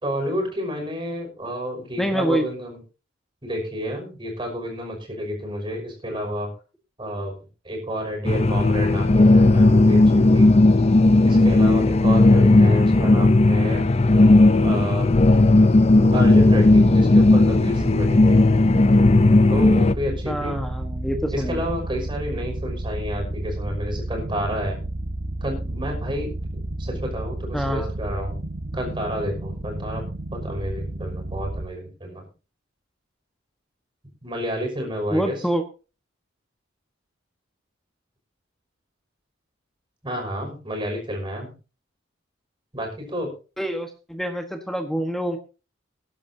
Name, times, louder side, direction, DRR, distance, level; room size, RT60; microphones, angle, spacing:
voice 1, 0.0-2.8 3.4-6.5 7.0-7.4 7.6-10.5 11.2-13.8 14.6-15.1 15.9-18.4 19.5-20.6 21.3-24.8 25.4-26.3 26.8-28.4 28.7-32.2 34.2-35.4 40.0-41.5 42.7-43.3, equal, 25° right, 1 dB, 5.8 m, -30 dB
voice 2, 2.0-2.5 20.3-21.6 27.5-27.9 35.1-35.6 43.6-45.4, right 1 dB, ahead, 6 dB, 1.3 m, -26 dB
sound 1, 8.2-19.9, left 2 dB, 30° left, 0.6 m, -15 dB
sound 2, 16.4-31.7, right 1 dB, 65° right, 1.3 m, -31 dB
21.5 x 11.0 x 2.8 m, 0.33 s
head